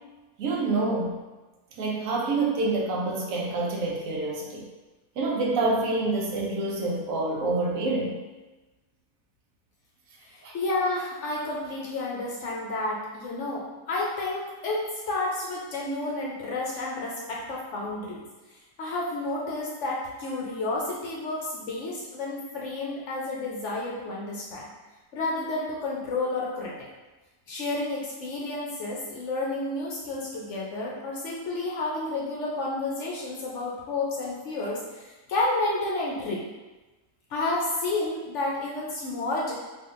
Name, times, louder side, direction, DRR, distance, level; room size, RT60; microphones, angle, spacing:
voice 1, 0.4-1.1 1.8-4.6 5.2-8.2 10.4-10.5, right 2 dB, 70° right, -2 dB, 1.0 m, -27 dB
voice 2, 10.2-18.2 18.8-24.7 25.1-26.7 27.5-36.4 37.3-39.5, left 2 dB, 65° left, -4 dB, 0.8 m, -30 dB
3.4 x 2.5 x 2.4 m, 1.2 s
omnidirectional pair, 1.5 m